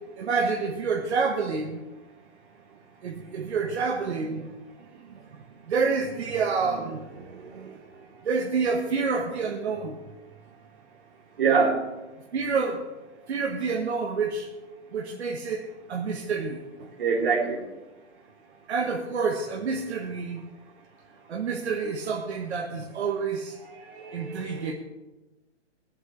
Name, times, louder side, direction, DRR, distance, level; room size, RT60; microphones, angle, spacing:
voice 1, 0.2-1.8 3.0-4.5 5.7-7.8 8.2-10.0 12.3-12.8 13.3-14.5 14.9-16.6 18.7-20.4 21.3-23.5 24.1-24.7, right 5 dB, 70° right, 0 dB, 1.5 m, -28 dB
voice 2, 11.4-11.9 17.0-17.6 23.8-24.7, right 5 dB, 50° right, -3 dB, 3.5 m, -25 dB
23.0 x 7.8 x 3.4 m, 1.1 s
hypercardioid pair, 165°, 35 cm